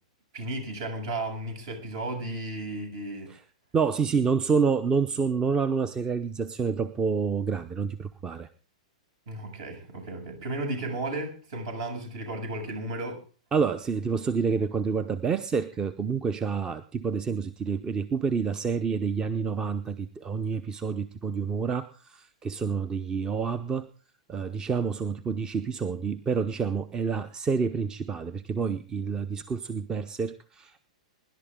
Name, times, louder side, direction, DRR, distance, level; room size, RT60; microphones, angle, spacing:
voice 1, 0.3-3.3 9.3-13.2, right 2 dB, 55° right, 7.5 m, -34 dB
voice 2, 3.7-8.5 13.5-23.9 24.3-30.8, right 5 dB, 20° right, 0.8 m, -28 dB
24.0 x 11.5 x 3.8 m
hypercardioid pair, 110°, 4 cm